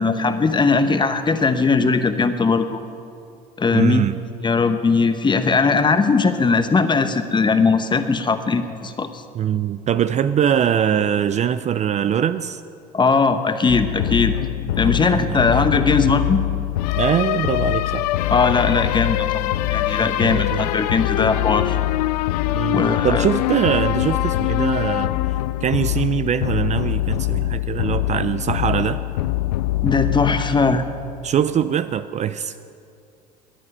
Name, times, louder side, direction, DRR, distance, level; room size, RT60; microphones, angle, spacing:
voice 1, 0.0-2.8 3.6-4.0 4.4-9.2 12.9-14.3 14.8-16.4 18.3-21.8 22.7-23.3 29.8-30.8, left 4 dB, 25° left, 9 dB, 1.1 m, -19 dB
voice 2, 3.7-4.2 9.3-12.6 14.8-15.8 17.0-18.1 20.2-20.7 22.5-29.0 31.2-32.6, right 9 dB, 35° right, 12 dB, 0.5 m, -22 dB
sound 1, 13.7-31.3, left 15 dB, 80° left, 0.4 m, -23 dB
18.0 x 9.7 x 5.6 m, 2.4 s
hypercardioid pair, 75°, 20 cm